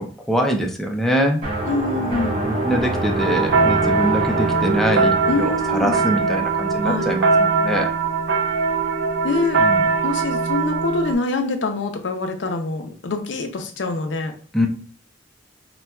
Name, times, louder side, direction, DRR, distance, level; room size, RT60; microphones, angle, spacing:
voice 1, 0.0-1.4 2.4-7.9 9.6-9.8 14.5-14.7, equal, ahead, 1 dB, 0.4 m, -23 dB
sound 1, 1.4-8.1, right 1 dB, 30° right, 0.9 m, -28 dB
voice 2, 1.7-2.4 5.3-6.0 6.8-7.2 9.2-9.6 10.0-14.3, left 3 dB, 90° left, 6 dB, 0.5 m, -25 dB
sound 2, 3.2-11.1, right 4 dB, 80° right, 0.5 m, -21 dB
4.1 x 2.2 x 2.2 m, 0.43 s
head